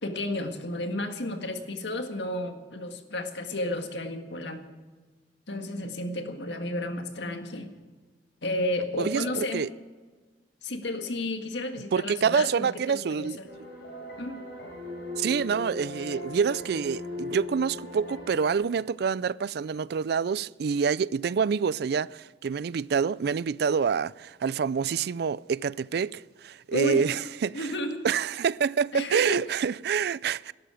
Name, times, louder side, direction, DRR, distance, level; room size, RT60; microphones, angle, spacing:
voice 1, 0.0-4.7 5.5-7.7 8.4-9.6 10.6-13.5 14.2-14.4 26.7-27.1 27.5-28.0 28.9-29.4, left 1 dB, 90° left, 1.8 m, -32 dB
voice 2, 9.0-9.7 11.9-13.4 15.2-27.7 28.0-30.5, right 6 dB, 65° right, 0.4 m, -27 dB
sound 1, 13.5-18.5, left 2 dB, 70° left, 4.9 m, -38 dB
18.0 x 12.5 x 5.1 m
head